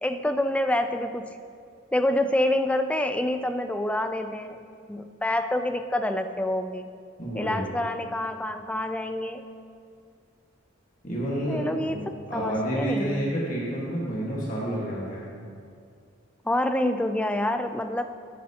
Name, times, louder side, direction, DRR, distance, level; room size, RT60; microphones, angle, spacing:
voice 1, 0.0-1.3 1.9-6.9 7.4-9.5 11.5-12.0 12.3-13.3 16.4-18.0, left 1 dB, 5° left, 8 dB, 0.3 m, -27 dB
voice 2, 7.2-7.6 11.0-15.3, equal, 45° left, -6 dB, 1.6 m, -29 dB
14.0 x 7.4 x 2.9 m, 2.3 s
head